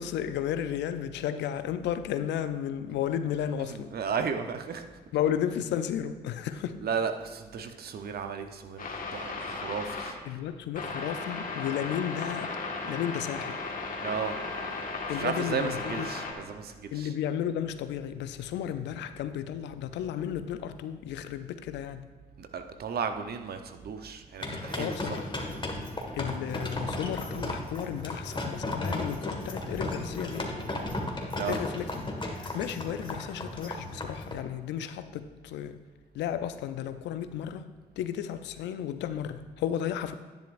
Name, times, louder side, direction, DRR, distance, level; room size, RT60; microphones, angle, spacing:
voice 1, 0.0-3.9 5.1-6.8 10.3-12.6 12.8-13.7 15.1-16.1 16.9-22.0 24.8-25.3 26.1-30.5 31.5-32.1 32.5-35.8 36.1-37.7 38.0-40.1, left 10 dB, 75° left, 11 dB, 0.5 m, -33 dB
voice 2, 3.6-4.8 6.8-10.2 14.0-14.5 15.1-17.1 22.4-25.2 25.8-26.1 31.4-31.6, right 6 dB, 60° right, 7 dB, 0.9 m, -34 dB
sound 1, 8.8-10.1 10.7-16.3, left 3 dB, 50° left, 1.7 m, -36 dB
sound 2, 24.4-34.4, left 1 dB, 25° left, 1.8 m, -35 dB
10.5 x 10.0 x 2.6 m, 1.4 s
hypercardioid pair, 50°, 18 cm